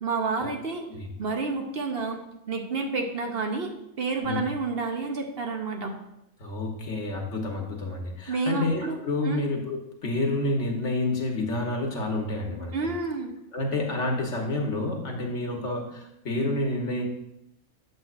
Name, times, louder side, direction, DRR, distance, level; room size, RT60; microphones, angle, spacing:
voice 1, 0.0-0.9 1.2-2.2 2.5-5.9 8.3-9.5 12.7-13.3, right 3 dB, 50° right, 4 dB, 0.8 m, -30 dB
voice 2, 6.4-12.7 13.5-17.0, left 2 dB, 55° left, 1 dB, 1.3 m, -29 dB
7.9 x 7.4 x 2.4 m, 0.81 s
omnidirectional pair, 1.6 m